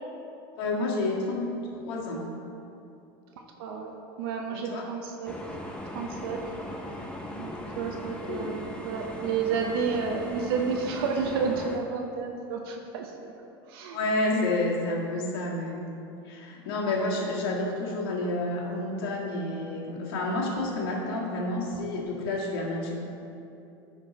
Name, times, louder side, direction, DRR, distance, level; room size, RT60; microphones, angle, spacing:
voice 1, 0.6-2.3 4.5-4.9 8.3-8.5 13.9-15.9 16.3-22.9, left 2 dB, 80° left, -2 dB, 1.8 m, -30 dB
voice 2, 3.6-5.4 5.9-6.5 7.4-13.3 13.7-14.0 14.3-14.7, right 5 dB, 75° right, 2 dB, 0.9 m, -31 dB
sound 1, 5.2-11.8, left 1 dB, 10° left, 0.7 m, -39 dB
9.9 x 4.5 x 5.3 m, 2.7 s
supercardioid pair, 130°, 12 cm